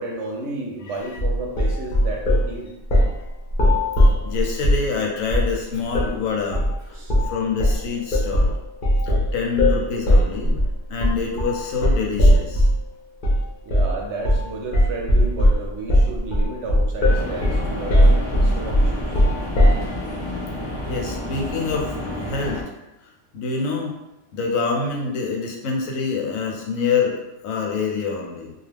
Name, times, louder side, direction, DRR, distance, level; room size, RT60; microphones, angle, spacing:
voice 1, 0.0-2.7 6.9-7.2 13.6-19.2, right 2 dB, 70° right, 0 dB, 0.8 m, -32 dB
sound 1, 1.2-2.5 2.9-3.2 3.5-4.9 5.3-5.6 5.9-6.1 6.5-6.8 7.1-7.3 7.6-12.8 13.2-13.4 13.7-14.0 14.2-14.5 14.7-19.9, equal, 50° left, 0.7 m, -18 dB
voice 2, 4.2-7.0 7.2-8.5 9.0-10.6 10.9-12.7 20.9-22.6 23.3-23.9 24.3-27.2 27.4-28.5, left 5 dB, 85° left, 0 dB, 1.0 m, -26 dB
sound 2, 17.0-22.6, left 1 dB, 15° right, 0.7 m, -30 dB
2.4 x 2.3 x 3.2 m, 0.89 s
omnidirectional pair, 1.4 m